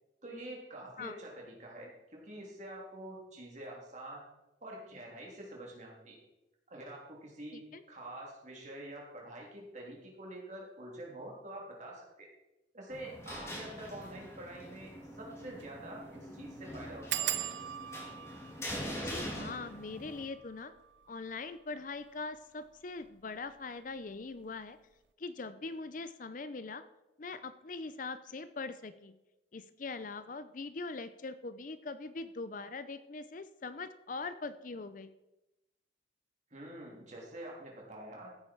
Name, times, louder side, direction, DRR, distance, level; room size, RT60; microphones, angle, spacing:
voice 1, 0.2-4.2 4.6-6.2 6.7-12.3 12.7-17.5 36.5-38.3, right 1 dB, 40° right, -2 dB, 3.3 m, -46 dB
voice 2, 7.5-7.8 18.6-20.7 21.1-24.8 25.2-26.8 27.2-29.1 29.5-35.1, left 3 dB, 45° left, 12 dB, 0.5 m, -42 dB
sound 1, 12.9-20.2, equal, 15° left, 2.8 m, -43 dB
sound 2, 13.9-14.1 14.5-14.6 14.9-15.0 15.5-15.8 16.0-16.1 17.1-22.4 23.1-23.6 23.9-24.2 24.5-24.6, right 13 dB, 70° right, 0.5 m, -41 dB
14.5 x 8.7 x 4.6 m, 0.97 s
head